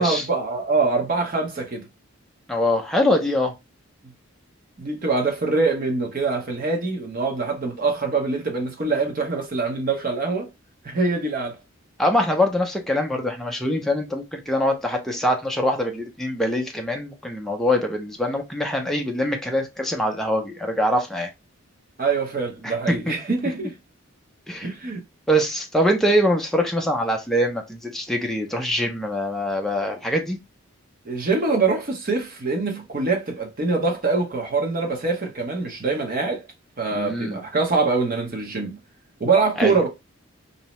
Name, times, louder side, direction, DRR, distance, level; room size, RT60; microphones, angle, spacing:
voice 1, 0.0-1.9 4.8-10.5 10.8-11.6 22.0-23.7 24.6-25.0 31.0-36.4 36.8-38.8 39.2-39.9, right 3 dB, 45° right, 0.7 m, -24 dB
voice 2, 2.5-3.5 12.0-21.3 22.6-23.1 24.5-24.7 25.3-30.4 36.9-37.4 39.6-39.7, equal, ahead, 0.4 m, -23 dB
2.7 x 2.0 x 2.9 m
head